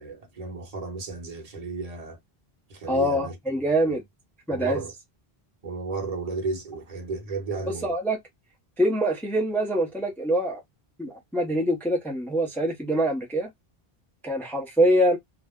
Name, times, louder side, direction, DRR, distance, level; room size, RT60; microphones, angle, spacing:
voice 1, 0.0-2.2 2.7-3.4 3.8-4.0 4.5-4.9 5.6-7.9, right 4 dB, 40° right, 1.1 m, -33 dB
voice 2, 2.9-4.0 4.5-4.8 7.8-8.2 8.8-10.6 11.0-13.5 14.2-15.2, right 1 dB, ahead, 0.6 m, -24 dB
2.5 x 2.1 x 3.5 m
omnidirectional pair, 1.0 m